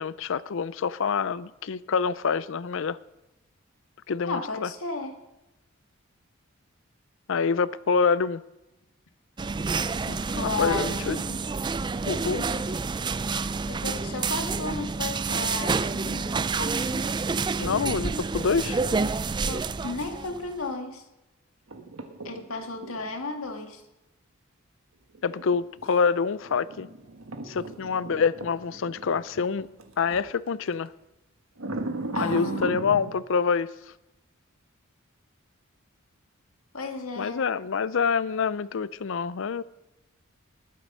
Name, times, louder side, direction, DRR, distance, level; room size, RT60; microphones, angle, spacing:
voice 1, 0.0-3.0 4.1-4.7 7.3-8.4 10.1-11.2 12.1-12.5 17.6-18.8 25.2-26.9 27.5-29.7 30.0-30.9 32.2-33.7 37.2-39.6, left 5 dB, 65° left, 18 dB, 0.5 m, -26 dB
voice 2, 4.3-5.1 10.3-11.4 12.5-12.6 13.7-17.1 19.5-21.1 22.2-23.8 32.1-32.8 36.7-37.4, left 3 dB, 85° left, 4 dB, 1.9 m, -34 dB
sound 1, 9.4-20.5, right 4 dB, 20° right, 0.3 m, -28 dB
sound 2, 21.7-23.1 25.2-30.3 30.7-30.9 31.6-33.1, right 2 dB, 80° right, 1.4 m, -37 dB
20.0 x 7.7 x 5.5 m, 0.97 s
head